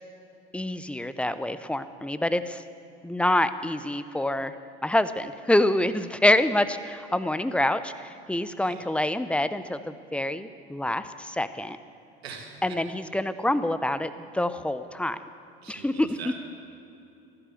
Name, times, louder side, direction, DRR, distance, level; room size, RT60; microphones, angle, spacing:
voice 1, 0.5-2.6 3.0-4.5 4.8-11.8 12.6-15.2 15.7-16.4, left 1 dB, 5° left, 12 dB, 0.8 m, -26 dB
voice 2, 12.2-12.9 15.6-16.4, right 6 dB, 85° right, 3 dB, 1.8 m, -42 dB
14.5 x 11.5 x 7.8 m, 2.8 s
hypercardioid pair, 70°, 31 cm